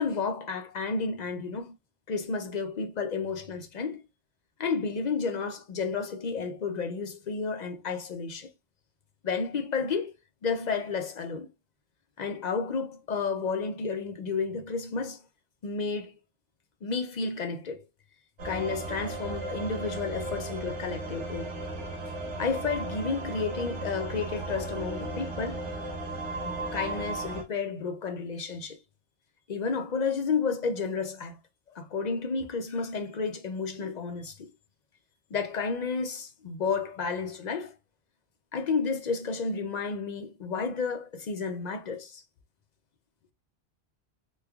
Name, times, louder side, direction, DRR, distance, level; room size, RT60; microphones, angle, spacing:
voice 1, 0.0-1.7 2.1-4.0 4.6-8.5 9.2-10.1 10.4-11.5 12.2-15.2 15.6-16.2 16.8-17.8 18.4-21.5 22.4-25.6 26.4-28.8 29.5-31.4 31.7-34.5 35.3-37.7 38.5-42.2, left 5 dB, 55° left, 0.5 m, -31 dB
sound 1, 18.4-27.4, right 2 dB, 85° right, 1.4 m, -35 dB
3.2 x 2.2 x 3.4 m
omnidirectional pair, 1.2 m